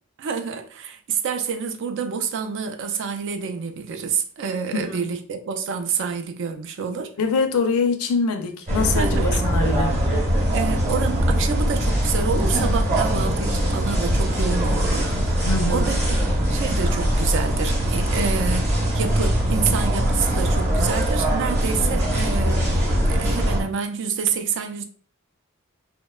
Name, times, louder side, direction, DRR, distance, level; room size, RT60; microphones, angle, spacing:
voice 1, 0.2-7.1 8.9-9.4 10.5-16.0 16.5-24.8, right 6 dB, 55° right, 0.3 m, -28 dB
voice 2, 7.2-10.0 15.5-15.9, left 4 dB, 75° left, 0.5 m, -24 dB
sound 1, 8.7-23.6, equal, 30° right, 0.8 m, -21 dB
2.7 x 2.1 x 2.2 m
head